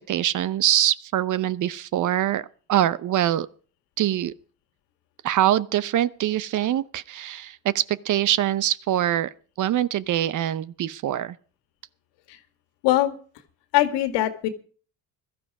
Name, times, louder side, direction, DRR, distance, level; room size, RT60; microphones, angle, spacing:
voice 1, 0.1-3.5 4.0-4.3 5.2-9.3 9.6-11.4, right 12 dB, 45° right, 0.7 m, -24 dB
voice 2, 12.8-13.1 13.7-14.5, left 14 dB, 75° left, 2.0 m, -21 dB
16.0 x 12.5 x 4.8 m
supercardioid pair, 100°, 42 cm